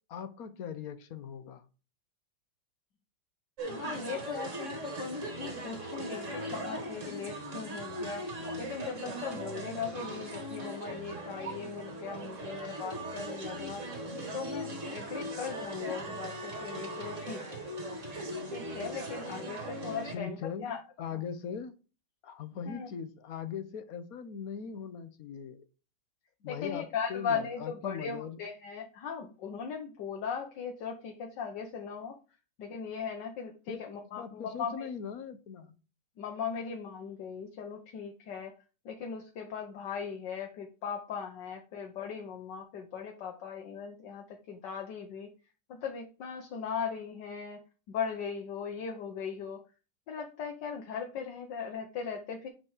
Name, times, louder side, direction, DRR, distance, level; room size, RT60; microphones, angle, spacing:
voice 1, 0.1-1.6 20.1-20.7 21.0-21.7 22.2-25.6 26.4-26.8 27.1-28.4 33.7-33.8 34.1-35.7, left 7 dB, 60° left, 11 dB, 1.2 m, -40 dB
voice 2, 3.6-8.3 8.6-13.8 14.3-17.7 18.5-20.8 21.1-21.2 22.6-22.9 26.5-32.2 32.6-34.9 36.2-38.5 38.8-45.3 45.7-47.6 47.9-49.6 50.1-52.5, left 6 dB, 80° left, 3 dB, 1.6 m, -38 dB
sound 1, 3.6-20.2, right 1 dB, 45° right, 1.9 m, -39 dB
7.1 x 4.4 x 4.9 m, 0.34 s
omnidirectional pair, 1.9 m